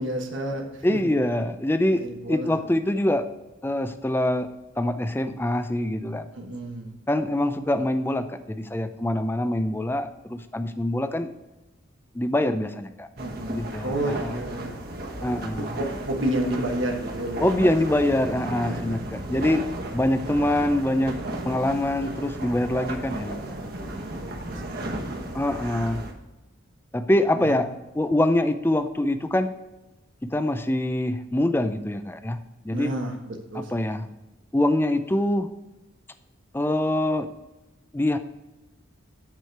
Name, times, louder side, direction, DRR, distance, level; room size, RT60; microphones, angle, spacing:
voice 1, 0.0-1.1 1.9-2.6 6.3-6.9 13.2-14.8 15.2-17.7 18.7-18.9 24.2-25.2 27.3-27.6 32.7-34.1, right 1 dB, 75° right, 1 dB, 1.3 m, -31 dB
voice 2, 0.8-3.3 3.6-4.5 4.8-6.3 7.1-11.3 12.1-13.1 13.5-14.3 15.2-15.7 17.4-19.7 19.9-21.2 21.5-23.4 25.3-26.0 26.9-27.7 28.0-29.5 30.2-32.4 32.6-32.9 33.5-34.1 34.5-35.5 36.5-37.3 37.9-38.2, left 1 dB, 10° left, 10 dB, 0.4 m, -24 dB
sound 1, 13.2-26.1, right 1 dB, 50° right, 1.2 m, -34 dB
9.2 x 4.9 x 4.5 m, 1.1 s
head